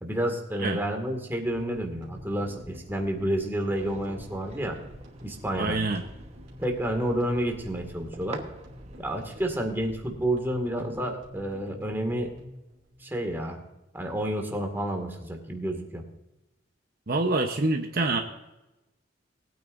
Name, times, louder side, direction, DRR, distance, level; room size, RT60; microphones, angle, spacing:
voice 1, 0.0-4.8 5.2-5.8 6.6-8.4 9.0-12.3 13.0-13.6 13.9-16.0, right 1 dB, 10° right, 2 dB, 2.0 m, -30 dB
sound 1, 1.4-13.8, equal, 80° right, 3.0 m, -48 dB
sound 2, 3.7-9.5, right 2 dB, 35° right, 1.2 m, -46 dB
voice 2, 5.5-6.0 17.1-18.2, right 2 dB, 50° right, 4 dB, 0.9 m, -26 dB
20.5 x 9.2 x 2.6 m, 0.97 s
head